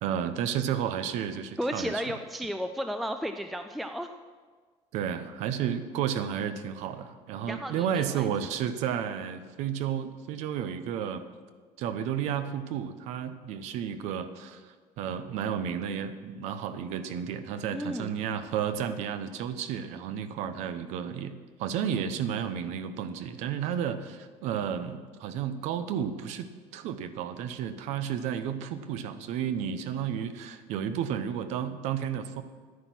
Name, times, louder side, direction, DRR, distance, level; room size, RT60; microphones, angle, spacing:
voice 1, 0.0-2.0 4.9-11.2 11.8-21.3 21.6-26.5 26.7-32.4, right 8 dB, 70° right, 11 dB, 0.8 m, -32 dB
voice 2, 1.6-4.1 7.5-8.3 17.7-18.2, equal, ahead, 7 dB, 0.3 m, -33 dB
10.5 x 9.6 x 6.0 m, 1.5 s
cardioid pair, 160°, 12 cm